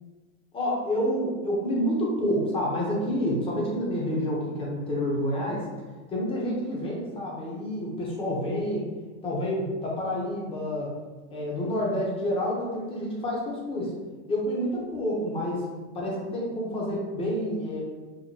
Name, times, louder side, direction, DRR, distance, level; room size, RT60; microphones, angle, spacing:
voice 1, 0.5-5.7 6.1-8.9 9.2-10.9 11.3-13.9 14.3-15.7 15.9-17.8, equal, 15° left, -3 dB, 0.8 m, -28 dB
4.9 x 2.5 x 2.8 m, 1.3 s
supercardioid pair, 150°, 36 cm